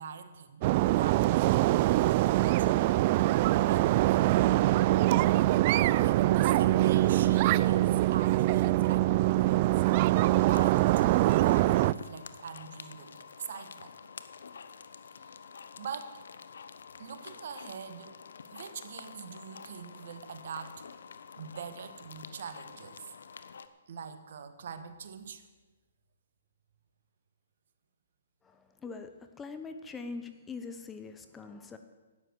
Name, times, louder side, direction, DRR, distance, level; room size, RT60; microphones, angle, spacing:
voice 1, 0.0-2.8 3.7-4.1 5.7-9.8 10.5-13.9 15.1-15.4 15.8-16.2 17.0-18.2 18.5-21.0 21.4-23.1 23.9-25.5, right 7 dB, 60° right, 10 dB, 1.3 m, -43 dB
sound 1, 0.6-11.9, right 16 dB, 40° right, 0.3 m, -24 dB
sound 2, 9.8-23.7, left 6 dB, 75° left, 0.9 m, -48 dB
voice 2, 28.4-29.1 29.4-31.8, left 4 dB, 15° left, 8 dB, 0.9 m, -42 dB
12.0 x 9.7 x 8.0 m, 1.2 s
hypercardioid pair, 140°, 0 cm